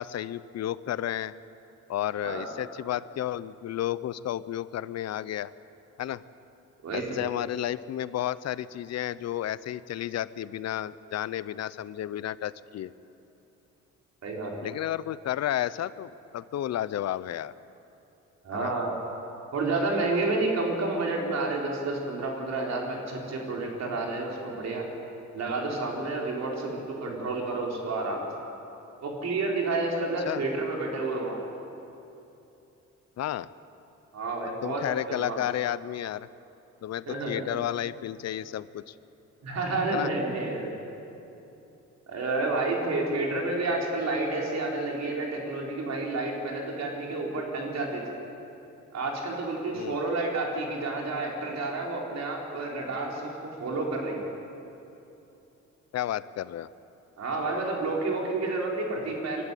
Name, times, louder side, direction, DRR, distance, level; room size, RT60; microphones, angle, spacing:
voice 1, 0.0-1.3 1.9-5.5 6.0-6.2 6.9-12.9 14.6-17.5 18.5-18.7 30.3-30.5 33.2-33.5 34.6-36.3 36.8-38.9 39.9-40.1 49.7-50.0 55.9-56.7, left 12 dB, 60° left, 18 dB, 0.6 m, -32 dB
voice 2, 6.8-7.2 14.2-14.5 18.4-18.9 19.5-24.8 25.3-28.3 29.0-31.4 34.1-34.8 35.1-35.4 37.1-37.6 39.4-40.7 42.1-48.0 48.9-53.3 53.6-54.3 57.2-59.4, right 2 dB, 60° right, -1 dB, 4.4 m, -30 dB
23.5 x 12.0 x 9.4 m, 2.9 s
cardioid pair, 90°, 30 cm